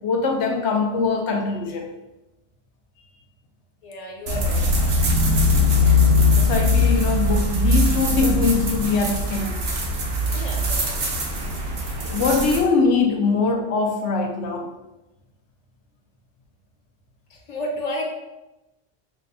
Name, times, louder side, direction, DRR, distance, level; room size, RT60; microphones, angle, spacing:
voice 1, 0.0-1.9 3.0-3.1 6.5-9.6 12.1-14.7, left 4 dB, 80° left, 3 dB, 0.9 m, -22 dB
voice 2, 3.8-4.6 6.3-6.5 10.3-11.0 17.3-18.0, left 1 dB, 40° left, -1 dB, 0.7 m, -32 dB
sound 1, 4.3-12.6, left 2 dB, 60° right, 0.8 m, -21 dB
5.6 x 2.2 x 2.6 m, 0.99 s
omnidirectional pair, 1.2 m